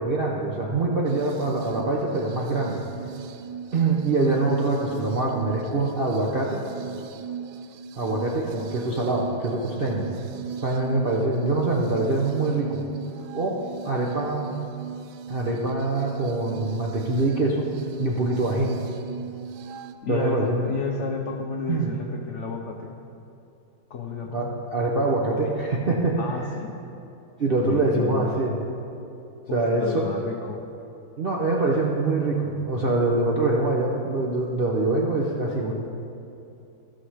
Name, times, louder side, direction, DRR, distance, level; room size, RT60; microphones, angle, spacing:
voice 1, 0.0-2.8 3.7-6.6 8.0-10.0 10.6-12.8 13.3-13.6 13.8-14.5 15.3-17.7 18.0-18.7 20.1-20.7 21.7-21.9 24.3-26.2 27.4-28.6 29.5-30.0 31.2-35.7, right 2 dB, 60° right, -3 dB, 0.5 m, -24 dB
sound 1, 1.1-19.9, right 7 dB, 85° right, 1.4 m, -38 dB
voice 2, 20.0-23.0 23.9-24.6 26.2-26.8 27.6-28.4 29.5-30.6, left 5 dB, 80° left, 1 dB, 0.6 m, -32 dB
15.0 x 5.9 x 4.9 m, 2.7 s
omnidirectional pair, 2.2 m